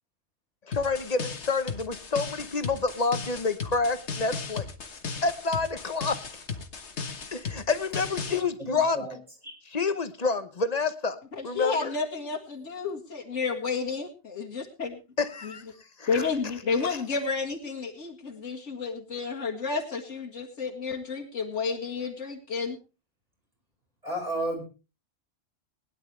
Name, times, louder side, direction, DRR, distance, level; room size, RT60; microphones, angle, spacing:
sound 1, 0.7-8.4, left 5 dB, 70° left, 1.7 m, -36 dB
voice 1, 0.7-4.6 5.2-6.2 7.3-9.0 9.7-11.2 11.4-11.9 15.2-15.6 16.0-16.1, left 4 dB, 35° left, 11 dB, 1.0 m, -28 dB
voice 2, 8.6-9.2 9.4-9.5 24.0-24.6, right 1 dB, 30° right, 0 dB, 5.5 m, -32 dB
voice 3, 11.3-15.0 15.4-15.6 16.1-22.8, left 4 dB, 90° left, -2 dB, 2.4 m, -31 dB
20.5 x 11.0 x 3.3 m, 0.31 s
omnidirectional pair, 1.2 m